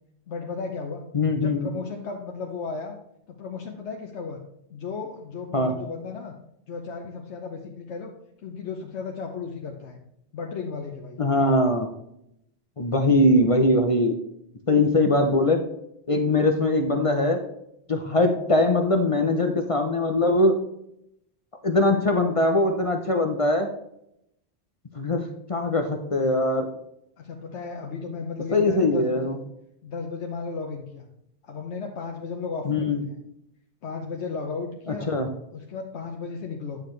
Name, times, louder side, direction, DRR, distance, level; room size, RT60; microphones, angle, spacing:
voice 1, 0.3-1.0 1.4-3.0 3.3-4.4 4.7-6.3 6.7-8.1 8.4-10.0 10.3-11.2 27.2-29.3 29.8-31.1 31.4-33.1 33.8-35.1 35.5-36.8, left 4 dB, 85° left, 1 dB, 1.1 m, -34 dB
voice 2, 1.1-1.7 5.5-5.7 11.2-11.9 12.8-14.2 14.7-15.6 16.1-17.4 17.9-20.6 21.6-23.7 25.0-26.7 28.5-29.4 32.6-33.0 35.1-35.3, left 2 dB, 35° left, 4 dB, 0.7 m, -21 dB
9.8 x 6.7 x 3.2 m, 0.80 s
omnidirectional pair, 1.1 m